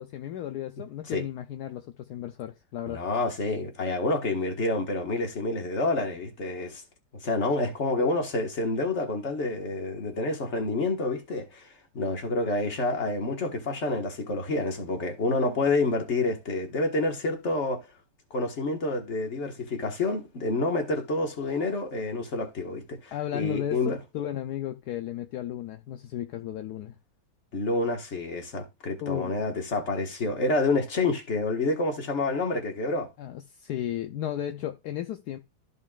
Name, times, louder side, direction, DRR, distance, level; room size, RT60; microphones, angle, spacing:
voice 1, 0.0-3.0 23.1-27.0 29.0-29.3 33.2-35.4, left 11 dB, 70° left, 1.0 m, -34 dB
voice 2, 2.9-6.8 7.2-11.7 11.9-17.8 18.3-24.0 27.5-33.1, left 2 dB, 40° left, 1.7 m, -28 dB
13.5 x 5.2 x 2.4 m
omnidirectional pair, 2.1 m